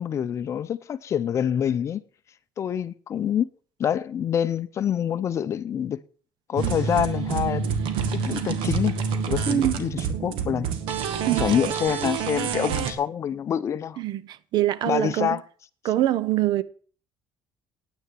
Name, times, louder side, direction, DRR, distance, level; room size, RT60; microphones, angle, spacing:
voice 1, 0.0-2.0 2.6-3.5 3.8-6.0 6.5-7.6 8.1-8.9 9.3-10.7 11.4-14.0 14.8-15.4, left 9 dB, 35° left, 0.6 m, -26 dB
sound 1, 6.6-12.9, right 6 dB, 80° right, 1.9 m, -27 dB
voice 2, 9.5-9.8 11.3-11.5 14.0-15.4 15.8-16.6, right 13 dB, 55° right, 0.8 m, -24 dB
9.8 x 9.3 x 7.5 m
cardioid pair, 175°, 9 cm